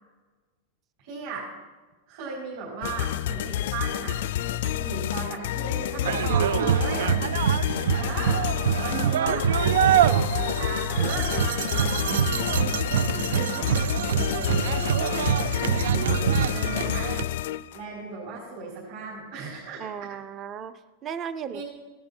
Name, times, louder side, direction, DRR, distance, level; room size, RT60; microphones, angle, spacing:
voice 1, 1.0-1.5 2.1-4.2 4.6-7.1 7.9-9.4 9.8-12.1 13.0-17.2 17.7-20.1 21.5-21.6, right 4 dB, 50° right, -7 dB, 5.2 m, -37 dB
sound 1, 2.8-17.9, left 12 dB, 65° left, 0.4 m, -29 dB
sound 2, 6.0-17.2, right 9 dB, 90° right, 0.3 m, -25 dB
voice 2, 8.9-9.4 19.8-20.7 21.0-21.6, right 8 dB, 25° right, 13 dB, 0.6 m, -35 dB
17.0 x 12.0 x 4.5 m, 1.3 s
supercardioid pair, 165°, 0 cm